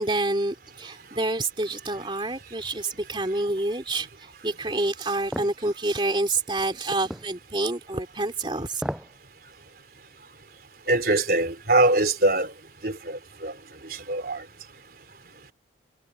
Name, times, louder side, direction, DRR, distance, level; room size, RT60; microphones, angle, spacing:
voice 1, 0.0-8.8, right 2 dB, 25° right, 3.0 m, -28 dB
sound 1, 5.3-5.6 7.1-7.3 8.7-9.1 9.5-9.6, equal, 5° right, 6.4 m, -32 dB
voice 2, 10.9-12.5 12.8-13.5 14.1-14.4, right 2 dB, 55° right, 3.9 m, -22 dB
head